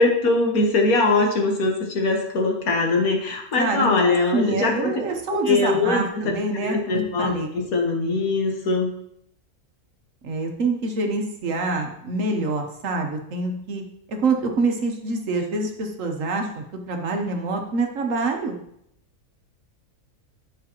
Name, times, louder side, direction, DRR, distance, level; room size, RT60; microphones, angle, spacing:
voice 1, 0.0-4.9 5.4-6.3 6.6-8.9, left 3 dB, 75° left, 1 dB, 1.7 m, -21 dB
voice 2, 3.6-7.5 10.2-13.8 14.1-18.6, right 3 dB, 60° right, 4 dB, 1.3 m, -26 dB
9.9 x 5.7 x 2.9 m, 0.74 s
omnidirectional pair, 1.6 m